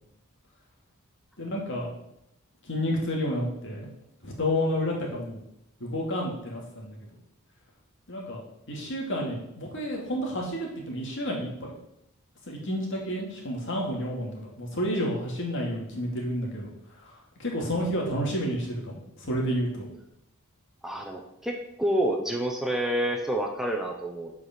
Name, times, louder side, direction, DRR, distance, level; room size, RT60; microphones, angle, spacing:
voice 1, 1.4-1.9 2.7-3.9 4.2-5.4 5.8-7.0 8.1-8.4 8.7-11.5 12.5-16.7 17.0-17.1 17.4-19.9, equal, 60° left, -1 dB, 2.4 m, -30 dB
voice 2, 20.8-24.3, right 1 dB, ahead, 1 dB, 0.9 m, -28 dB
8.4 x 4.8 x 6.0 m, 0.81 s
head